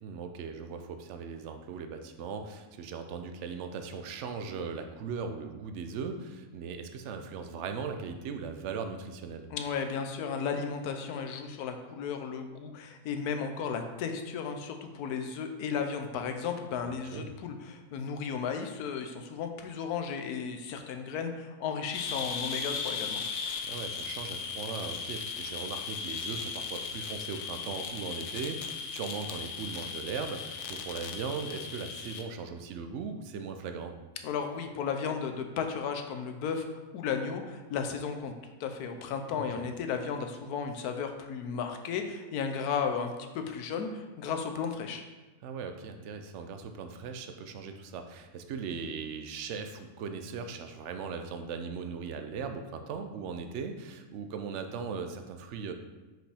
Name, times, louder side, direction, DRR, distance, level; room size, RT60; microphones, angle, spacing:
voice 1, 0.0-9.5 16.8-17.3 23.6-33.9 39.3-39.7 45.4-55.7, right 5 dB, 65° right, 7 dB, 0.8 m, -39 dB
voice 2, 9.5-23.2 34.2-36.6 36.9-38.3 38.6-45.0, left 6 dB, 80° left, 6 dB, 1.2 m, -34 dB
sound 1, 21.9-32.2, left 5 dB, 65° left, 0.8 m, -37 dB
6.1 x 5.0 x 3.4 m, 1.2 s
omnidirectional pair, 1.6 m